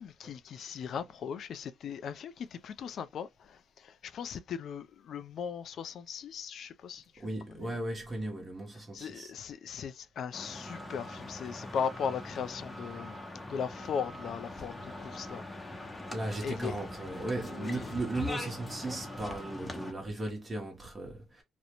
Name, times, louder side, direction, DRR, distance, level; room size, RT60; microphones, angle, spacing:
voice 1, 0.0-7.0 7.6-7.8 8.9-13.2 13.5-15.4 15.8-16.1 16.4-16.7 17.5-17.9, left 7 dB, 65° left, 0.3 m, -38 dB
voice 2, 7.2-9.3 16.1-21.4, right 2 dB, 30° right, 0.9 m, -36 dB
sound 1, 10.3-19.9, left 2 dB, 20° left, 0.7 m, -42 dB
2.5 x 2.0 x 2.8 m
cardioid pair, 90°, 0 cm